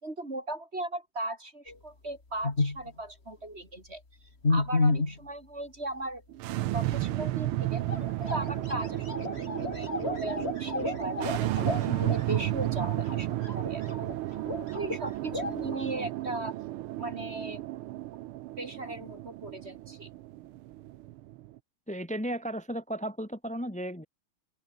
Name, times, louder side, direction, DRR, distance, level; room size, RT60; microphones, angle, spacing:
voice 1, 0.0-4.0 4.5-6.2 6.5-7.8 8.2-13.8 14.7-16.5 17.0-17.6 18.6-20.1, right 2 dB, 30° right, 3.6 m, -37 dB
sound 1, 1.7-1.8 2.4-2.9 4.4-5.2 7.5-7.6 7.8-15.0 15.3-15.7, left 3 dB, 30° left, 3.2 m, -32 dB
sound 2, 6.3-21.6, right 16 dB, 85° right, 1.6 m, -33 dB
voice 2, 21.9-24.1, equal, 5° left, 2.5 m, -34 dB
open air
omnidirectional pair, 2.3 m